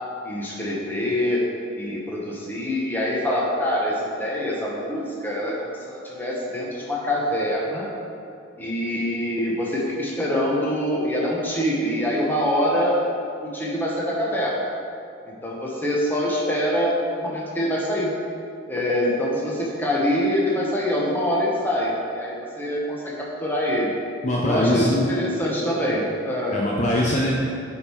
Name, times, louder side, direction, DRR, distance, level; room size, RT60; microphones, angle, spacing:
voice 1, 0.2-1.4 1.8-7.9 8.6-13.1 13.4-14.7 15.3-18.1 18.7-23.9 24.4-26.6, equal, 10° left, -4 dB, 1.0 m, -25 dB
voice 2, 24.2-25.1 26.5-27.3, left 1 dB, 35° left, -4 dB, 0.6 m, -22 dB
8.5 x 3.6 x 4.5 m, 2.4 s
head